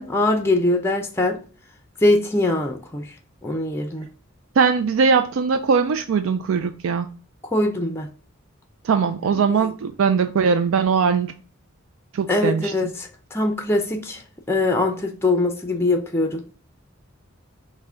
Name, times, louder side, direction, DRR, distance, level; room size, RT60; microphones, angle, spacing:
voice 1, 0.0-1.4 2.0-3.1 3.4-4.1 7.5-8.1 9.3-9.4 12.3-14.2 14.5-16.4, left 2 dB, 10° left, 0.5 m, -22 dB
voice 2, 4.6-7.1 8.8-11.3 12.1-12.7, right 5 dB, 75° right, 0.4 m, -20 dB
5.7 x 2.1 x 3.7 m
head